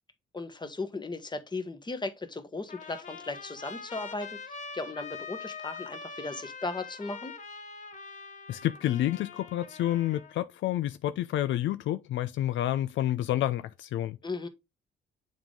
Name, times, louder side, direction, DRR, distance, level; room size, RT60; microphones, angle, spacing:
voice 1, 0.3-7.3 14.2-14.5, left 3 dB, 20° left, 1.2 m, -37 dB
Trumpet, 2.7-10.4, left 4 dB, 40° left, 1.1 m, -43 dB
voice 2, 8.5-14.2, left 13 dB, 70° left, 0.4 m, -29 dB
7.2 x 3.8 x 3.6 m
cardioid pair, 90°, 20 cm